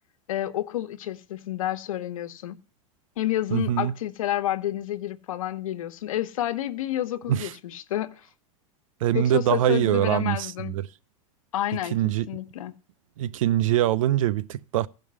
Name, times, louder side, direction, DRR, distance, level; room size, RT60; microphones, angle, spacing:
voice 1, 0.3-2.6 3.2-8.1 9.1-10.7 11.5-12.0 12.3-12.7, left 13 dB, 85° left, 1.2 m, -29 dB
voice 2, 3.5-3.9 7.3-7.5 9.0-10.9 11.9-12.3 13.2-14.9, right 12 dB, 80° right, 0.6 m, -23 dB
16.0 x 5.4 x 6.2 m
supercardioid pair, 170°, 17 cm